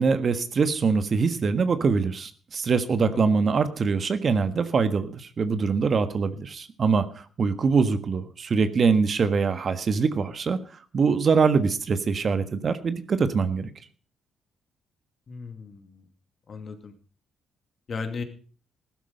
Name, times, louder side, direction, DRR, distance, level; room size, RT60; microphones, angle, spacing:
voice 1, 0.0-10.6 10.9-13.7, right 5 dB, 45° right, 10 dB, 1.5 m, -23 dB
voice 2, 15.3-15.8 16.5-16.9 17.9-18.2, left 4 dB, 45° left, 7 dB, 2.4 m, -34 dB
15.5 x 12.5 x 5.3 m, 0.41 s
cardioid pair, 90°, 0 cm